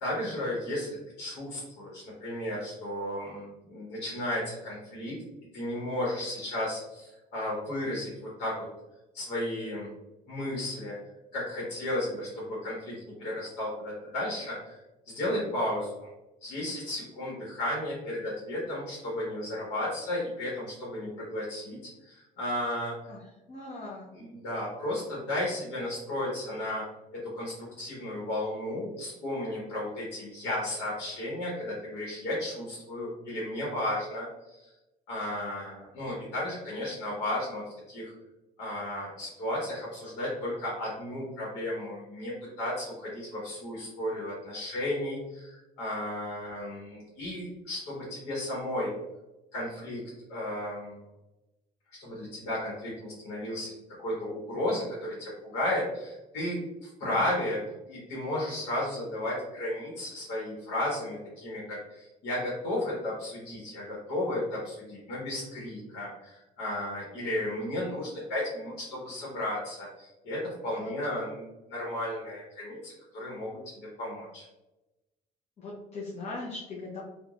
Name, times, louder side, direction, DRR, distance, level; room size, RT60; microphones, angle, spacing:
voice 1, 0.0-5.2 5.5-8.7 9.1-9.9 10.3-11.0 11.3-12.9 13.2-14.8 15.1-16.1 16.4-23.1 24.1-26.8 27.1-34.7 35.1-38.1 38.6-48.9 49.5-50.0 50.3-51.0 52.0-53.7 54.0-57.6 57.8-74.5, left 1 dB, 90° left, -5 dB, 1.1 m, -34 dB
voice 2, 23.1-24.1 57.1-57.4 70.7-70.9 75.6-77.0, left 2 dB, 40° left, -4 dB, 0.7 m, -40 dB
3.0 x 2.3 x 2.4 m, 0.99 s
cardioid pair, 110°, 17 cm